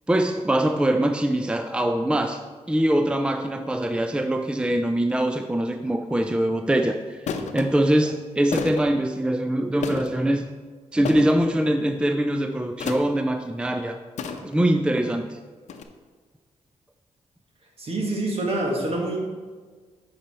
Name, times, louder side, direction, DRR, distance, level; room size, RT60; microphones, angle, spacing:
voice 1, 0.1-2.4 2.7-10.4 10.9-14.0 14.4-15.4, right 1 dB, 10° right, 6 dB, 0.5 m, -23 dB
sound 1, 6.1-6.3 7.3-7.7 8.5-8.9 9.8-10.2 11.1-11.5 12.8-13.2 14.2-14.7 15.7-15.8, left 5 dB, 70° left, 0.8 m, -31 dB
voice 2, 17.8-19.2, right 2 dB, 55° right, 0 dB, 2.1 m, -26 dB
8.6 x 5.4 x 4.4 m, 1.5 s
cardioid pair, 65°, 12 cm